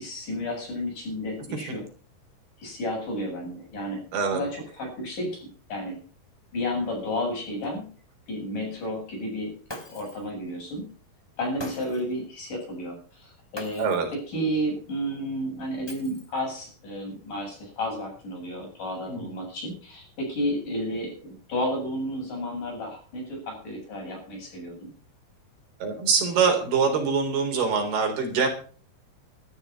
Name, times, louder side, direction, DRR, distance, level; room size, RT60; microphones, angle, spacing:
voice 1, 0.0-1.9 2.6-5.4 5.7-6.0 6.5-7.9 8.3-9.5 9.8-10.9 11.4-13.9 14.3-24.9, equal, 50° left, 1 dB, 9.5 m, -32 dB
voice 2, 4.1-4.4 13.8-14.1 19.1-19.3 25.8-28.5, right 5 dB, 75° right, 4 dB, 5.8 m, -24 dB
Shatter, 9.7-10.3 11.6-12.2 13.5-14.1 15.9-16.5, left 1 dB, 10° left, 1.9 m, -41 dB
13.5 x 13.5 x 6.0 m, 0.41 s
omnidirectional pair, 4.6 m